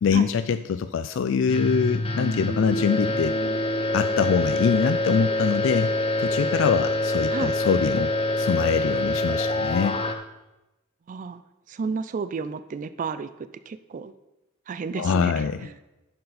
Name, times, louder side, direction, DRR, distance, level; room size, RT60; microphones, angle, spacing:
voice 1, 0.0-3.3 3.9-5.9 6.2-8.1 8.4-10.0 14.9-15.6, left 6 dB, 70° left, 11 dB, 0.3 m, -24 dB
sound 1, 1.5-10.2, left 1 dB, 30° left, 0.8 m, -25 dB
voice 2, 11.1-11.4 11.7-14.1 14.7-15.7, right 5 dB, 40° right, 13 dB, 0.3 m, -32 dB
10.5 x 6.7 x 4.1 m, 0.99 s
head